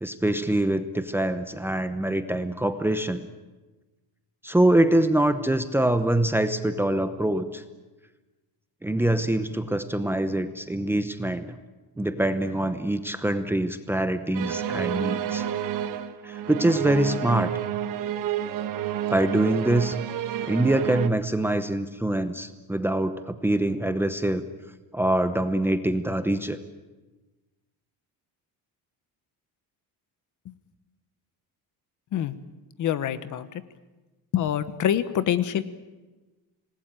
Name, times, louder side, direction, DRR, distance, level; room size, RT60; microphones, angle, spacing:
voice 1, 0.0-3.2 4.4-7.6 8.8-11.6 12.0-15.4 16.2-17.5 19.1-20.0 20.5-24.4 24.9-26.6, right 1 dB, 5° right, 9 dB, 0.8 m, -24 dB
sound 1, 14.3-21.1, right 10 dB, 55° right, 1.5 m, -30 dB
voice 2, 32.8-33.5 34.3-35.6, left 10 dB, 50° left, 13 dB, 1.2 m, -25 dB
26.5 x 19.5 x 8.9 m, 1.2 s
cardioid pair, 175°, 38 cm